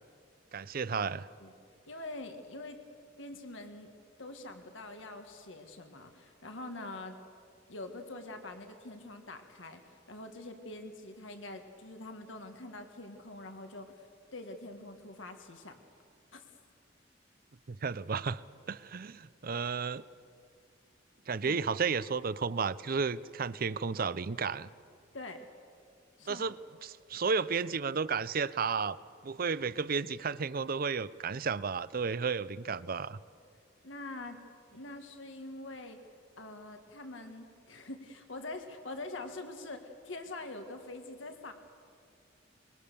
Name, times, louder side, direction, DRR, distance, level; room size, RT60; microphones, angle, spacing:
voice 1, 0.5-1.3 17.7-18.4 18.7-20.0 21.3-24.7 26.3-26.6 26.8-29.0 29.2-33.2, right 5 dB, 50° right, 17 dB, 0.6 m, -33 dB
voice 2, 1.9-2.8 3.2-3.9 4.2-7.2 7.7-15.8 16.3-16.4 21.4-21.6 25.1-25.5 26.2-26.5 33.8-34.4 34.7-36.0 36.4-41.5, left 2 dB, 80° left, 5 dB, 1.8 m, -44 dB
24.5 x 22.0 x 6.9 m, 2.3 s
head